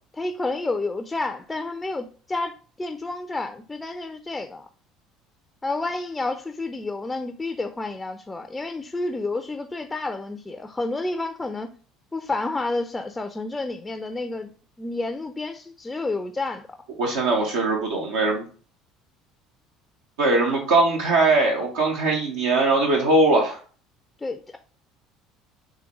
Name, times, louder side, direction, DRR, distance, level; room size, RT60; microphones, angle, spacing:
voice 1, 0.1-4.7 5.6-11.7 12.1-14.5 14.8-16.7 24.2-24.6, left 2 dB, 15° left, 0.4 m, -30 dB
voice 2, 17.0-18.5 20.2-23.6, right 2 dB, 75° right, 0.7 m, -21 dB
3.7 x 3.1 x 2.9 m
hypercardioid pair, 65°, 0 cm